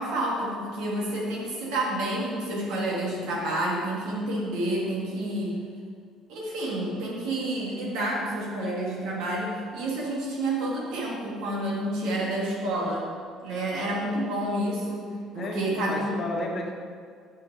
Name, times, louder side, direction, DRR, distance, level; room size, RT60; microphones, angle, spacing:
voice 1, 0.0-5.6 6.3-13.0 13.4-15.1 15.3-16.1, right 1 dB, 80° right, -4 dB, 2.5 m, -29 dB
voice 2, 15.3-16.7, left 2 dB, 40° left, 0 dB, 1.4 m, -32 dB
8.4 x 6.5 x 4.9 m, 2.1 s
cardioid pair, 140°, 0 cm